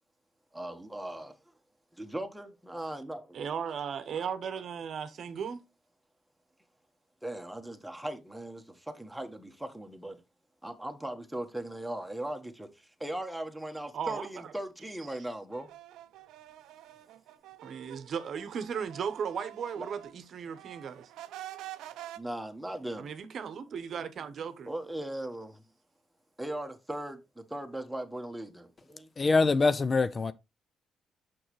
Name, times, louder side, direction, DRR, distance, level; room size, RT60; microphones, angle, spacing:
voice 1, 0.5-1.4 1.9-3.4 7.2-10.2 10.6-15.7 19.8-19.9 22.2-23.1 24.7-25.6 26.4-29.1, right 1 dB, 5° right, 1.2 m, -39 dB
voice 2, 3.3-5.6 13.9-14.5 17.6-21.1 23.0-24.7, right 7 dB, 60° right, 0.8 m, -36 dB
sound 1, 15.5-20.2 20.5-22.2, right 13 dB, 90° right, 0.5 m, -47 dB
voice 3, 29.2-30.3, left 3 dB, 35° left, 0.4 m, -24 dB
6.3 x 6.1 x 3.1 m
cardioid pair, 90°, 0 cm